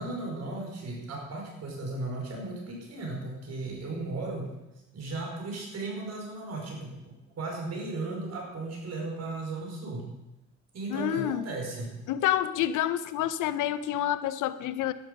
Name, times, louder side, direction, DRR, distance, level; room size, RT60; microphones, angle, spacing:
voice 1, 0.0-4.5 4.9-10.0 10.7-11.9, right 2 dB, 55° right, 0 dB, 5.0 m, -36 dB
voice 2, 10.9-11.5 12.1-14.9, left 12 dB, 85° left, 14 dB, 0.8 m, -28 dB
12.5 x 11.0 x 5.3 m, 1.0 s
cardioid pair, 90°, 30 cm